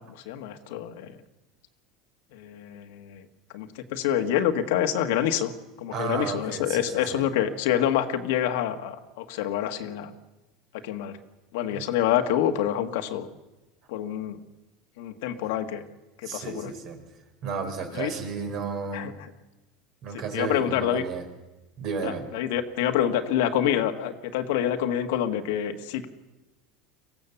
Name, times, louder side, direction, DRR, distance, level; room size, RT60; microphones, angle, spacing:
voice 1, 0.1-1.1 2.3-3.3 3.5-5.5 5.8-10.1 10.8-11.2 11.5-13.3 13.9-14.4 15.0-15.8 16.2-16.7 17.9-18.1 18.9-19.1 20.3-21.0 22.0-26.1, left 10 dB, 80° left, 7 dB, 1.6 m, -27 dB
voice 2, 5.9-7.2 11.7-11.8 16.2-17.0 17.4-19.1 20.0-21.2 21.8-22.3, right 5 dB, 50° right, 5 dB, 4.2 m, -33 dB
23.5 x 15.5 x 7.0 m, 1.1 s
supercardioid pair, 135°, 0 cm